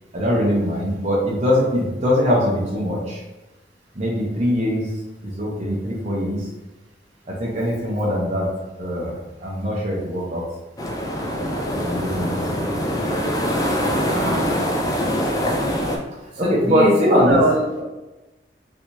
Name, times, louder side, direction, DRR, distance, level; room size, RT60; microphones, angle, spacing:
voice 1, 0.1-3.2 4.0-4.9 5.2-6.4 7.4-8.5 8.8-9.1 9.4-10.4 11.8-12.4 16.4-17.4, equal, 40° right, -5 dB, 0.7 m, -21 dB
sound 1, 10.8-16.0, equal, 20° left, 0.3 m, -23 dB
voice 2, 14.1-14.5 16.4-17.8, equal, 90° right, -3 dB, 1.0 m, -22 dB
3.2 x 2.7 x 2.9 m, 1.1 s
head